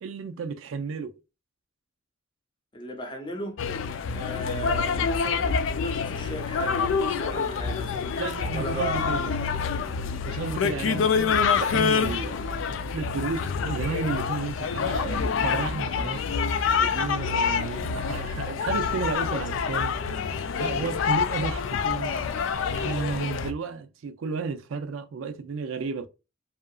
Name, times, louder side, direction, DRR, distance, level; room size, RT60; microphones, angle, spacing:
voice 1, 0.0-1.1 8.2-9.5 10.3-12.5 12.9-16.2 16.8-20.0 20.6-26.1, right 5 dB, 70° right, 0.4 m, -33 dB
voice 2, 2.7-3.6 4.1-8.2 8.5-9.4 10.8-11.1, equal, 25° left, 0.7 m, -36 dB
sound 1, 3.6-23.5, left 6 dB, 65° left, 0.3 m, -27 dB
2.8 x 2.4 x 2.3 m
head